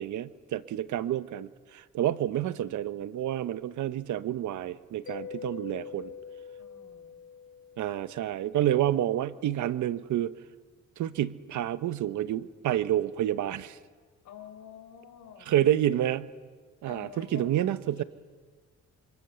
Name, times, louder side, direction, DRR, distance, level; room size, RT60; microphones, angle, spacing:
voice 1, 0.0-6.1 7.8-10.3 11.0-13.8 15.5-16.3 16.8-18.0, right 12 dB, 75° right, 14 dB, 1.1 m, -29 dB
Mallet percussion, 5.1-8.5, left 6 dB, 45° left, 0.7 m, -44 dB
voice 2, 6.6-7.2 14.2-15.5 16.8-17.6 18.0-18.1, left 9 dB, 70° left, 5 dB, 4.5 m, -48 dB
26.5 x 25.0 x 6.9 m, 1.5 s
cardioid pair, 90°, 30 cm